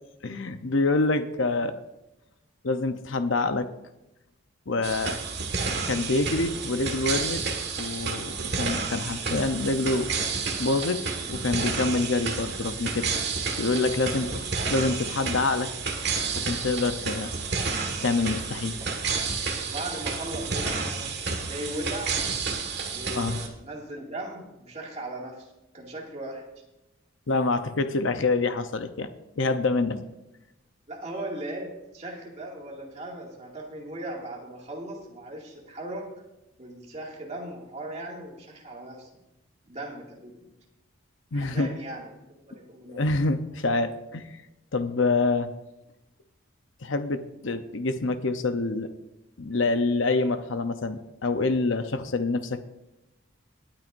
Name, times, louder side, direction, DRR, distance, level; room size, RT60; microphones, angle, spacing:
voice 1, 0.2-1.7 2.6-3.7 4.7-5.2 5.9-7.4 7.8-10.1 10.6-13.1 13.5-14.3 14.7-15.7 16.4-17.3 18.0-18.8 23.1-23.4 27.3-29.1 29.4-30.0 41.3-41.7 42.9-44.3 44.7-45.5 46.8-48.9 49.4-52.6, left 3 dB, 70° left, 9 dB, 0.8 m, -26 dB
sound 1, 4.8-23.5, right 4 dB, 55° right, 1.7 m, -30 dB
voice 2, 18.7-19.0 19.7-22.2 22.9-26.5 30.9-36.1 36.6-39.1 39.7-40.5 41.3-43.0, right 1 dB, 30° right, -2 dB, 2.3 m, -38 dB
21.5 x 9.0 x 2.6 m, 0.95 s
head